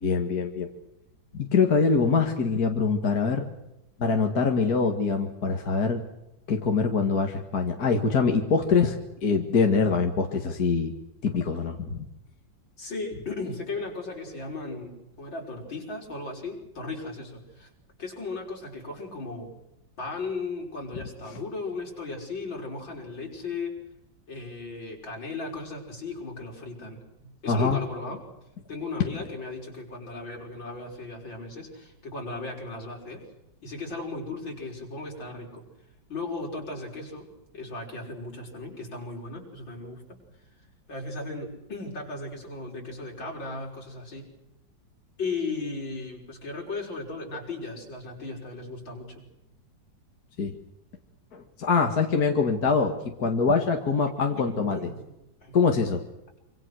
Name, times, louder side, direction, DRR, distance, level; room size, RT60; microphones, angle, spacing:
voice 1, 0.0-0.7 1.3-3.4 4.0-6.0 6.5-9.0 9.2-10.9 11.2-12.1 27.5-27.8 50.4-50.5 51.3-54.8 55.5-56.0, left 5 dB, 55° left, 3 dB, 2.4 m, -24 dB
voice 2, 12.8-17.7 18.0-19.5 20.0-23.8 24.3-28.2 28.7-33.2 33.6-35.6 36.1-37.3 37.5-40.2 40.9-44.3 45.2-49.3 54.4-55.1 55.4-55.6, left 3 dB, 80° left, 0 dB, 6.2 m, -36 dB
26.0 x 26.0 x 6.4 m, 0.89 s
omnidirectional pair, 2.0 m